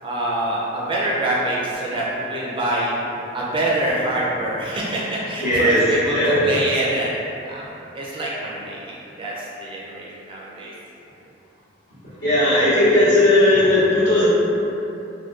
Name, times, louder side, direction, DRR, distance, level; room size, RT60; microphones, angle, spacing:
voice 1, 0.0-2.9 3.3-7.2 7.5-7.7 7.9-10.7, right 1 dB, 25° right, -6 dB, 0.5 m, -25 dB
voice 2, 5.4-5.8 6.1-6.4 12.2-14.2, left 1 dB, 75° left, -14 dB, 1.3 m, -16 dB
3.6 x 2.2 x 2.4 m, 2.8 s
head